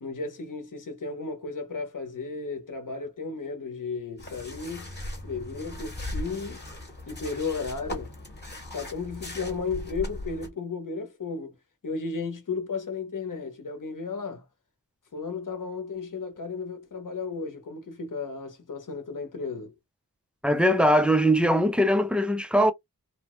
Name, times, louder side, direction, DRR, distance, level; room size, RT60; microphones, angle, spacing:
voice 1, 0.0-4.9 5.2-6.6 7.1-8.1 8.7-11.5 11.8-14.4 15.1-19.7, left 4 dB, 55° left, 0.9 m, -34 dB
sound 1, 4.2-10.5, left 1 dB, 25° left, 1.0 m, -38 dB
voice 2, 20.4-22.7, equal, 5° right, 0.3 m, -21 dB
2.9 x 2.1 x 3.0 m
wide cardioid pair, 55°, 39 cm